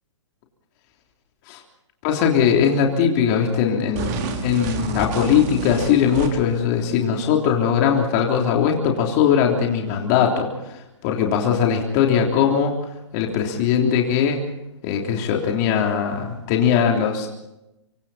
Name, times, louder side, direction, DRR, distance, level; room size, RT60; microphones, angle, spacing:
voice 1, 2.0-10.5 11.0-12.8 13.1-14.4 14.8-17.3, left 7 dB, 35° left, 1 dB, 3.4 m, -20 dB
sound 1, 3.9-6.6, right 6 dB, 35° right, 3.7 m, -29 dB
27.0 x 24.0 x 4.3 m, 0.90 s
hypercardioid pair, 135°, 16 cm